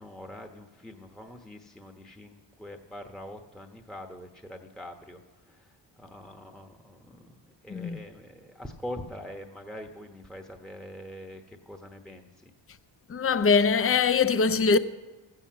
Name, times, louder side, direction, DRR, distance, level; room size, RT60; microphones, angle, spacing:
voice 1, 0.0-12.5, left 1 dB, ahead, 1.0 m, -44 dB
voice 2, 13.1-14.8, left 5 dB, 30° left, 0.6 m, -22 dB
14.0 x 7.7 x 7.4 m
cardioid pair, 70°, 46 cm